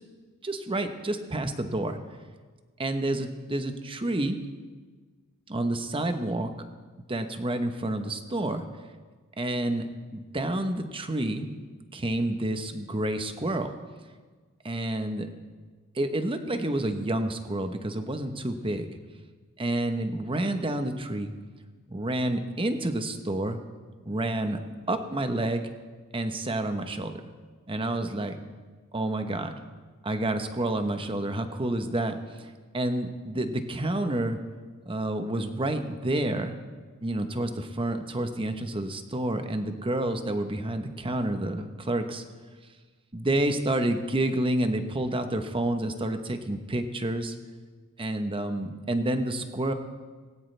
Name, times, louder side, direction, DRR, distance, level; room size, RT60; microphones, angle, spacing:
voice 1, 0.4-2.0 2.8-4.4 5.5-6.5 7.1-8.7 9.4-9.9 10.1-11.5 11.9-13.7 14.6-15.3 15.9-18.9 19.6-21.3 21.9-23.6 24.0-24.6 24.9-25.7 26.1-27.2 27.7-28.4 28.9-29.5 30.0-34.4 34.8-36.6 37.0-42.2 43.1-47.3 48.0-49.7, right 1 dB, 25° right, 7 dB, 1.0 m, -29 dB
18.0 x 17.0 x 3.4 m, 1.4 s
head